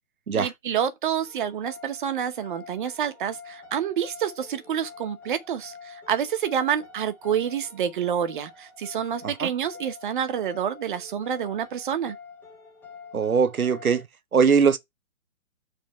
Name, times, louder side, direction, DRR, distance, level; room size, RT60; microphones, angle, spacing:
voice 1, 0.3-12.2, right 8 dB, 35° right, 1.0 m, -28 dB
sound 1, 1.2-14.0, left 5 dB, 5° left, 0.9 m, -47 dB
voice 2, 13.1-14.1 14.3-14.8, right 6 dB, 85° right, 1.1 m, -20 dB
7.1 x 3.6 x 5.4 m
figure-of-eight pair, 145°, 42 cm